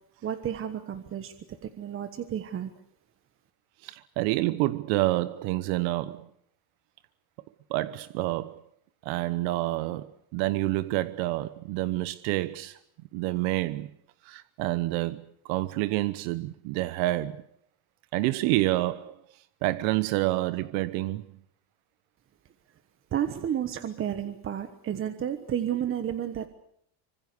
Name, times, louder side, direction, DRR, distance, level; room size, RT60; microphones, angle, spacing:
voice 1, 0.2-2.7 23.1-26.5, right 10 dB, 25° right, 1.3 m, -31 dB
voice 2, 3.8-6.3 7.7-8.6 9.0-12.8 13.1-13.9 14.2-17.4 18.1-19.2 19.6-21.2, right 18 dB, 75° right, 1.1 m, -28 dB
26.0 x 25.5 x 6.8 m
cardioid pair, 170°, 47 cm